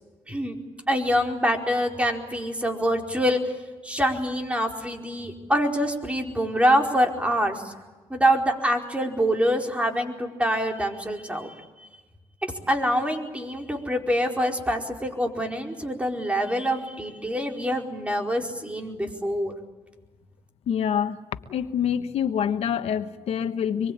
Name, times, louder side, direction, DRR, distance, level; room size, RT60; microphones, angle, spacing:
voice 1, 0.9-3.4 3.8-7.7 8.1-11.5 12.4-19.5, equal, 10° right, 2 dB, 4.8 m, -25 dB
voice 2, 20.7-21.2 21.5-23.9, left 8 dB, 85° left, 9 dB, 1.3 m, -26 dB
25.5 x 23.5 x 8.8 m, 1.2 s
cardioid pair, 80°, 10 cm